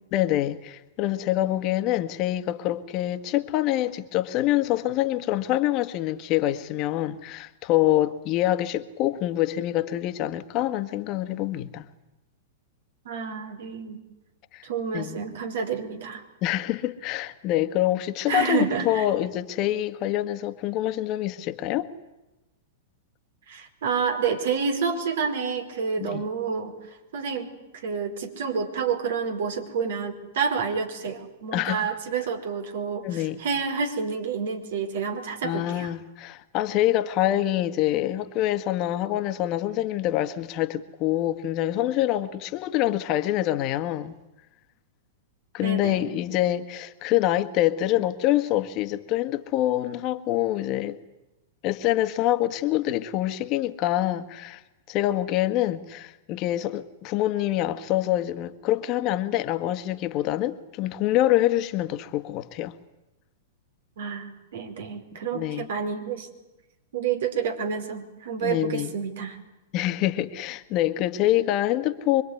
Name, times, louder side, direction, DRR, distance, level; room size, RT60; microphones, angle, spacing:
voice 1, 0.1-11.8 14.5-14.6 14.9-15.2 16.4-21.9 26.0-26.2 31.5-32.0 33.0-33.4 35.4-44.2 45.5-51.0 51.6-54.6 54.9-62.7 65.3-65.7 68.4-68.9 69.7-72.2, left 14 dB, 45° left, 1.7 m, -25 dB
voice 2, 13.0-14.0 14.6-16.2 18.3-19.1 23.5-35.9 45.6-46.2 64.0-66.3 66.9-69.4, right 6 dB, 70° right, 5.0 m, -29 dB
25.5 x 23.0 x 9.8 m
hypercardioid pair, 110°, 0 cm